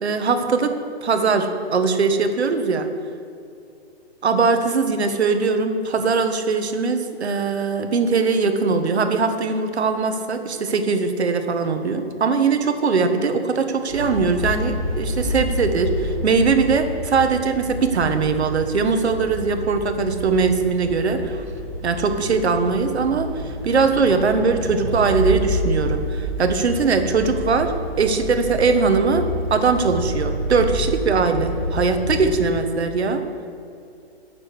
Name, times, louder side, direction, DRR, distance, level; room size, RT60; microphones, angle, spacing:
voice 1, 0.0-0.7 1.0-2.9 4.2-21.4 21.8-27.7 28.0-33.2, right 4 dB, 70° right, 7 dB, 1.6 m, -21 dB
sound 1, 13.9-32.4, equal, ahead, 0.9 m, -28 dB
9.3 x 7.5 x 8.2 m, 2.6 s
hypercardioid pair, 180°, 33 cm